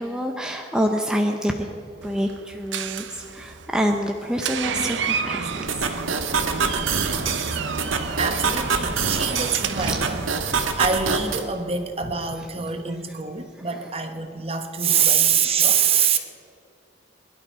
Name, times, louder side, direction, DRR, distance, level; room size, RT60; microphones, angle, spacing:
voice 1, 0.0-1.7 2.0-5.9 8.0-8.1 9.8-10.0 13.6-13.9 14.9-15.1 15.9-16.2, equal, 5° right, 2 dB, 0.7 m, -27 dB
Door, 2.0-10.7, right 5 dB, 65° right, 0.7 m, -30 dB
sound 1, 5.7-11.4, right 5 dB, 85° right, 1.4 m, -26 dB
voice 2, 8.2-10.2 10.6-16.2, right 7 dB, 30° right, 7 dB, 1.0 m, -24 dB
21.5 x 11.5 x 4.4 m, 2.8 s
head